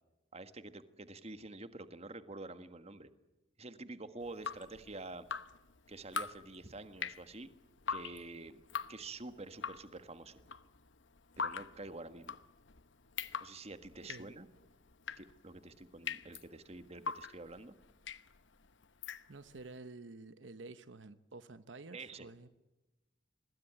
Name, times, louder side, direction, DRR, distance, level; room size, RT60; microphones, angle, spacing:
voice 1, 0.3-3.1 3.6-5.2 5.9-7.5 7.9-8.6 8.9-10.4 11.4-12.4 13.4-14.5 15.2-17.7 21.9-22.3, right 2 dB, 35° right, 11 dB, 1.6 m, -48 dB
Drip, 4.2-19.7, left 6 dB, 70° left, 1.1 m, -44 dB
voice 2, 19.3-22.5, right 3 dB, 70° right, 13 dB, 0.9 m, -50 dB
25.5 x 21.5 x 9.0 m, 1.0 s
head